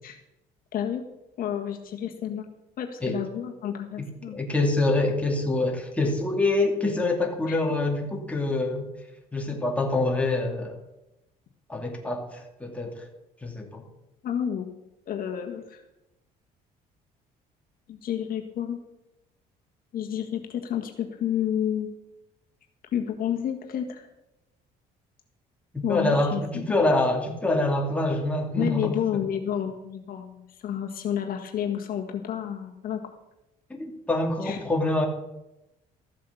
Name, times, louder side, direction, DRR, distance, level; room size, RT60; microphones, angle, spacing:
voice 1, 0.7-1.0 1.4-4.5 7.5-7.6 14.2-14.7 15.1-15.8 17.9-18.8 19.9-21.9 22.9-24.1 25.8-26.6 28.6-33.1 34.4-34.6, left 9 dB, 60° left, 3 dB, 1.6 m, -30 dB
voice 2, 4.0-8.9 9.3-10.8 11.7-13.0 13.4-13.8 25.7-29.2 33.7-35.1, left 2 dB, 10° left, 1 dB, 2.3 m, -26 dB
14.0 x 7.6 x 7.1 m, 0.93 s
cardioid pair, 110°, 17 cm